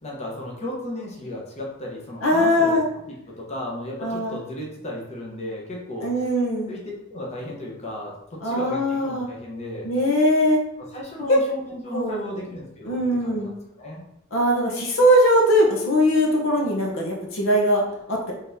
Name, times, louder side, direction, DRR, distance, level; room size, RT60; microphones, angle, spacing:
voice 1, 0.0-2.8 3.1-6.3 6.7-8.1 8.4-9.9 10.9-13.5 13.8-14.1, left 1 dB, 30° left, -3 dB, 0.8 m, -34 dB
voice 2, 2.2-2.8 4.0-4.4 6.0-6.7 8.4-9.3 9.8-10.6 11.3-11.4 11.9-12.4 12.8-13.5 14.3-18.3, equal, 70° left, -1 dB, 0.8 m, -20 dB
3.9 x 3.4 x 2.6 m, 0.80 s
head